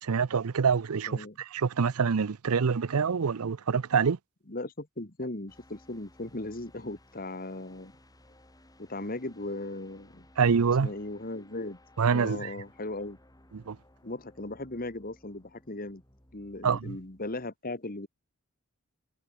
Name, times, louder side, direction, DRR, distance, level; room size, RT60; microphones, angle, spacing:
voice 1, 0.0-4.2 10.4-10.9 12.0-12.5 13.5-13.8 16.6-17.0, right 6 dB, 85° right, 0.6 m, -26 dB
voice 2, 4.5-7.9 8.8-10.3 10.8-11.8 12.1-13.2 14.0-16.0 16.3-18.1, left 2 dB, 40° left, 1.9 m, -37 dB
sound 1, 5.5-17.5, left 1 dB, 15° left, 6.4 m, -59 dB
head